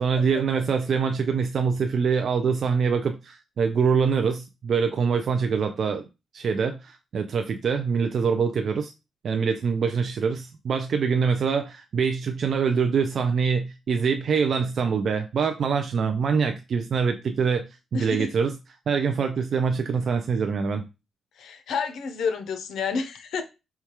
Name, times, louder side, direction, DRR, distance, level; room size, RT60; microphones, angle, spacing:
voice 1, 0.0-6.0 6.3-8.9 9.2-17.6 17.9-18.6 18.9-20.8, right 5 dB, 55° right, 0.3 m, -24 dB
voice 2, 17.9-18.3 21.4-23.4, left 5 dB, 80° left, 0.6 m, -29 dB
4.5 x 2.3 x 2.9 m
cardioid pair, 130°, 0 cm